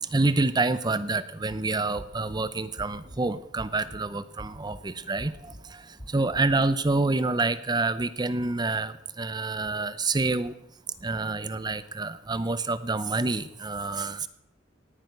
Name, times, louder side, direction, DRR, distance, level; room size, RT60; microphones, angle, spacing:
voice 1, 0.0-10.5 11.0-14.3, right 3 dB, 20° right, 15 dB, 0.6 m, -27 dB
sound 1, 1.5-1.6 2.0-2.4 2.8-3.2 3.6-4.0 4.4-4.8 5.2-5.6 6.0-6.4, equal, 50° left, 5.8 m, -44 dB
19.0 x 9.8 x 7.8 m, 0.81 s
head